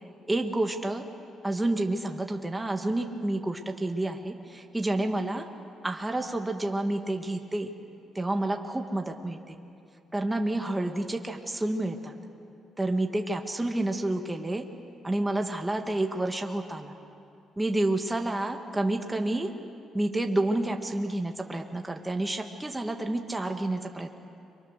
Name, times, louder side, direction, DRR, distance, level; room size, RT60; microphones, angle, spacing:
voice 1, 0.3-1.0 1.4-5.5 5.8-7.7 8.2-9.6 10.1-12.1 12.8-14.6 15.0-17.0 17.6-19.5 19.9-24.2, right 1 dB, 10° right, 4 dB, 1.8 m, -29 dB
30.0 x 24.0 x 6.7 m, 2.7 s
cardioid pair, 90°, 0 cm